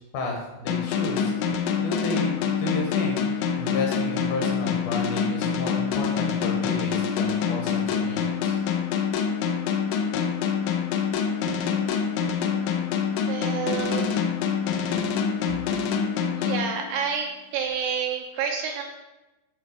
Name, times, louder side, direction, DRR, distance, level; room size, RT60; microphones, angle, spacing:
voice 1, 0.1-1.3 1.8-8.5, left 2 dB, 70° left, 0 dB, 2.6 m, -32 dB
sound 1, 0.7-17.3, left 7 dB, 85° left, 3.1 m, -26 dB
voice 2, 13.3-14.2 16.4-17.3 17.5-18.8, right 7 dB, 80° right, 2 dB, 2.4 m, -29 dB
9.9 x 4.5 x 5.4 m, 1.1 s
omnidirectional pair, 5.2 m